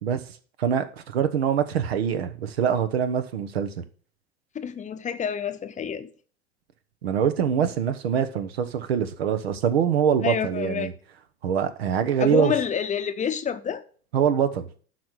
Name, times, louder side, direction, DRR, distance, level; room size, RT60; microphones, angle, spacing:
voice 1, 0.0-3.8 7.0-10.9 11.4-12.5 14.1-14.7, right 8 dB, 70° right, 1.2 m, -24 dB
voice 2, 4.5-6.1 10.2-10.9 12.2-13.8, left 7 dB, 25° left, 0.9 m, -28 dB
12.0 x 4.3 x 6.5 m
figure-of-eight pair, 80°, 32 cm